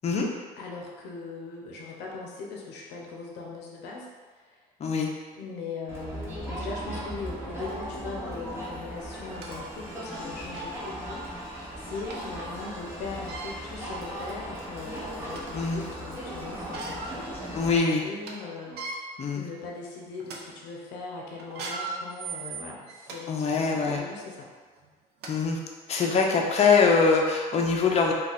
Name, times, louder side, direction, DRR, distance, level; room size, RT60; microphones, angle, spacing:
voice 1, 0.6-4.1 4.5-4.6 5.3-24.5, left 4 dB, 85° left, -2 dB, 0.6 m, -40 dB
Crowd, 5.9-17.8, right 1 dB, 15° right, 0.8 m, -37 dB
sound 1, 8.3-8.4 9.1-9.5 10.1-10.2 10.5-10.8 12.1-12.2 13.1-13.5 14.3-14.4 14.9-15.6 16.5-17.2 17.6-17.7 18.0-18.3 18.6-19.0 19.6-19.8 20.2-20.4 21.4-23.2 23.8-24.0 24.8-24.9 25.2-25.3 26.0-26.1, right 3 dB, 70° right, 0.5 m, -38 dB
voice 2, 17.5-18.0 19.2-19.4 23.3-24.0 25.3-25.6 25.9-28.1, left 5 dB, 40° left, 0 dB, 0.5 m, -23 dB
2.4 x 2.3 x 4.0 m, 1.4 s
cardioid pair, 110°, 17 cm